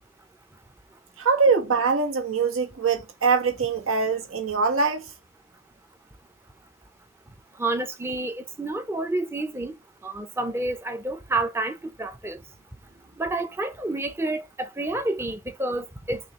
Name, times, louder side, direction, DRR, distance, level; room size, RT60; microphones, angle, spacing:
voice 1, 1.2-5.1, right 5 dB, 90° right, 1.3 m, -23 dB
voice 2, 7.6-9.8 10.0-12.4 13.2-16.2, right 2 dB, 10° right, 0.4 m, -29 dB
6.1 x 2.4 x 2.9 m
head